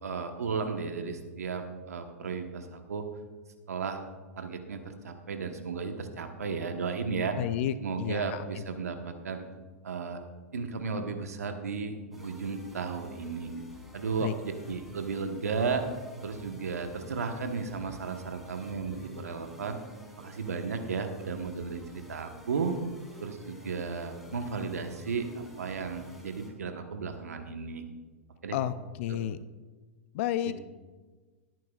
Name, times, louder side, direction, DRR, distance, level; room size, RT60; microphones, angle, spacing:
voice 1, 0.0-3.1 3.7-4.1 4.4-7.4 7.8-9.4 9.8-10.2 10.5-13.5 13.9-15.8 16.2-19.8 20.2-22.8 23.2-27.8 28.4-28.6 29.1-29.2, right 5 dB, 85° right, 6 dB, 1.2 m, -34 dB
voice 2, 7.3-8.6 14.2-14.3 28.5-29.4 30.1-30.6, left 11 dB, 55° left, 14 dB, 0.5 m, -31 dB
sound 1, 12.1-26.5, left 1 dB, ahead, 2.8 m, -51 dB
17.5 x 9.1 x 2.4 m, 1.3 s
hypercardioid pair, 115°, 8 cm